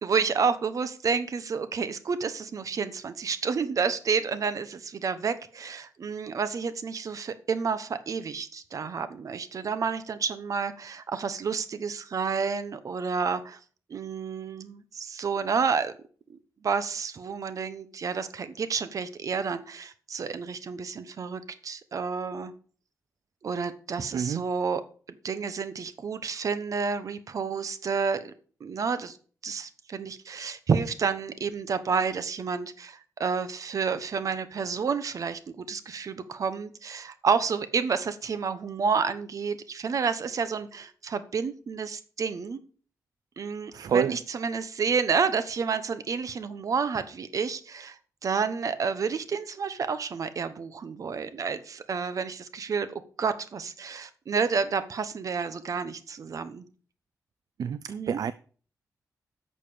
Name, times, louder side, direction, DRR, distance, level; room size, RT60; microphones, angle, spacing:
voice 1, 0.0-13.6 13.9-15.9 16.3-22.5 23.4-24.8 25.2-28.3 28.6-29.2 29.4-42.6 43.4-56.6 57.9-58.2, right 5 dB, 60° right, 1.0 m, -30 dB
voice 2, 43.7-44.1 57.6-57.8 58.1-58.3, right 7 dB, 75° right, 0.4 m, -26 dB
11.0 x 6.7 x 5.0 m
wide cardioid pair, 120°, 6 cm